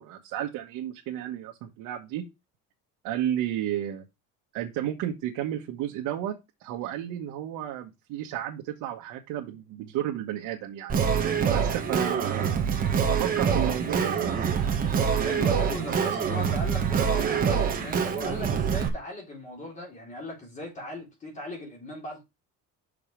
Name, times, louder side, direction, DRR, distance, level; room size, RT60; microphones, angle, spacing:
voice 1, 0.0-2.3 3.0-4.0 4.5-11.0 11.5-12.7 13.1-14.4, right 11 dB, 80° right, 1.5 m, -32 dB
Singing, 10.9-18.9, right 7 dB, 25° right, 1.4 m, -25 dB
voice 2, 15.0-22.2, left 1 dB, 20° left, 3.6 m, -39 dB
6.3 x 5.4 x 5.2 m
cardioid pair, 180°, 33 cm